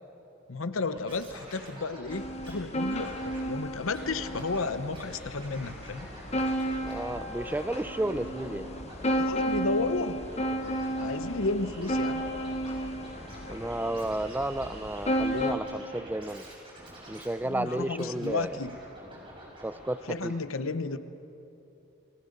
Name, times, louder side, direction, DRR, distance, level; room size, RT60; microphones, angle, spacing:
voice 1, 0.5-6.1 9.1-10.3 11.0-12.2 17.4-18.8 20.1-21.0, left 3 dB, 85° left, 12 dB, 0.9 m, -32 dB
Scratching (performance technique), 0.8-2.6 2.8-3.4 3.9-4.7 4.9-19.9 20.2-20.3, right 1 dB, 25° right, 6.2 m, -47 dB
sound 1, 2.1-15.5, equal, 30° left, 1.2 m, -33 dB
voice 2, 6.8-8.7 13.5-16.4 17.1-18.5 19.6-20.3, right 1 dB, 10° right, 14 dB, 0.4 m, -32 dB
29.0 x 21.0 x 5.3 m, 2.9 s
head